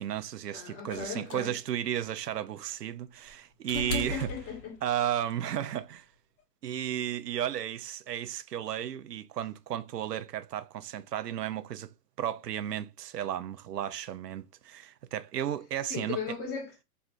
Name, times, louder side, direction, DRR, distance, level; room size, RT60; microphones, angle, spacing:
voice 1, 0.0-4.3 4.8-6.1 6.6-11.9 12.2-16.2, right 11 dB, 90° right, 0.6 m, -34 dB
voice 2, 0.5-1.5 3.7-4.8 15.9-16.8, left 6 dB, 30° left, 1.6 m, -37 dB
sound 1, 0.9-5.2 6.4-6.5, left 3 dB, 50° left, 1.4 m, -40 dB
4.4 x 3.2 x 2.5 m
hypercardioid pair, 125°, 47 cm